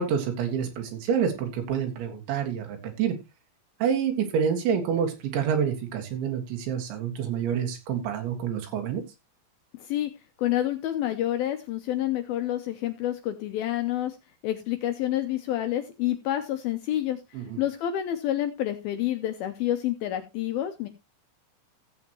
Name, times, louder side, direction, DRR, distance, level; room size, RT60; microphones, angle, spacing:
voice 1, 0.0-3.1 3.8-9.0 17.3-17.6, right 7 dB, 85° right, 4 dB, 4.1 m, -27 dB
voice 2, 9.8-10.1 10.4-14.2 14.4-17.2 17.6-20.9, left 12 dB, 80° left, 7 dB, 2.2 m, -28 dB
15.0 x 7.7 x 3.0 m, 0.23 s
omnidirectional pair, 5.1 m